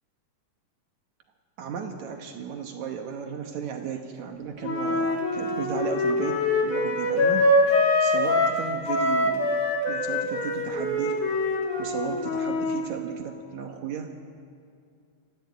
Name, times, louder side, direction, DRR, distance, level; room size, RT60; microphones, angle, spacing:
voice 1, 1.6-7.5 8.0-9.5 9.9-11.2 11.8-14.1, right 7 dB, 70° right, 4 dB, 2.4 m, -34 dB
Wind instrument woodwind instrument, 4.6-8.6 8.9-12.8, left 2 dB, 75° left, 4.1 m, -24 dB
24.0 x 14.5 x 8.5 m, 2.3 s
omnidirectional pair, 3.5 m